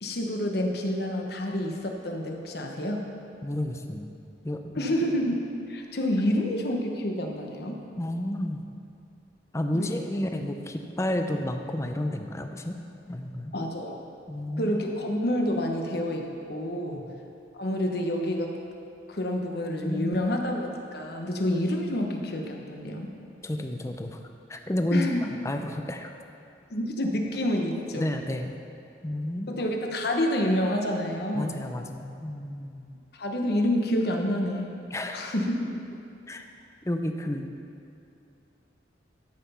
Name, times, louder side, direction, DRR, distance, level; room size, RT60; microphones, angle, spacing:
voice 1, 0.0-3.0 4.7-7.8 9.7-10.1 13.5-14.0 14.6-17.0 17.5-18.6 19.1-23.1 24.9-25.3 26.7-28.1 29.5-31.6 33.2-34.8 35.1-35.7, left 1 dB, 55° left, 2 dB, 1.1 m, -28 dB
voice 2, 3.4-4.1 4.4-4.9 8.0-8.6 9.5-12.7 13.1-13.5 14.3-14.8 16.9-17.1 19.8-20.2 23.4-24.2 24.5-25.1 25.4-26.1 28.0-28.5 29.0-29.6 31.3-32.9 34.9-35.2 36.3-36.5 36.9-37.5, left 1 dB, 15° left, 5 dB, 0.5 m, -31 dB
13.0 x 5.8 x 5.6 m, 2.6 s
head